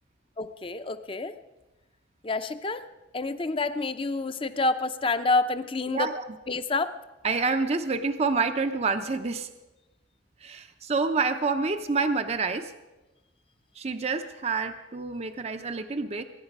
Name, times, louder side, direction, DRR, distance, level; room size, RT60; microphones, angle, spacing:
voice 1, 0.4-1.3 2.2-2.8 3.1-6.1 6.5-6.9, left 3 dB, 30° left, 11 dB, 0.6 m, -28 dB
voice 2, 5.9-6.2 7.2-9.5 10.4-12.7 13.8-16.2, right 4 dB, 35° right, 8 dB, 0.6 m, -28 dB
22.0 x 10.5 x 5.3 m, 1.1 s
head